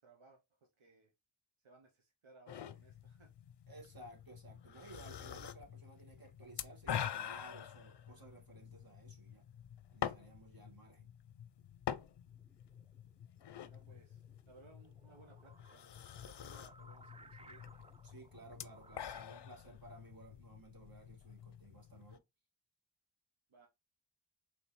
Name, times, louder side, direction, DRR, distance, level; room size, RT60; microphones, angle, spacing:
voice 1, 0.0-1.1 1.6-3.3 13.6-17.7 23.5-23.7, right 3 dB, 80° right, 1.1 m, -63 dB
sound 1, 2.5-22.2, left 9 dB, 60° left, 0.6 m, -47 dB
voice 2, 3.7-9.4 9.9-11.1 18.0-22.2, right 2 dB, 45° right, 2.1 m, -57 dB
sound 2, 12.3-19.3, right 2 dB, 15° right, 0.3 m, -62 dB
5.1 x 3.2 x 3.1 m
wide cardioid pair, 80°, 48 cm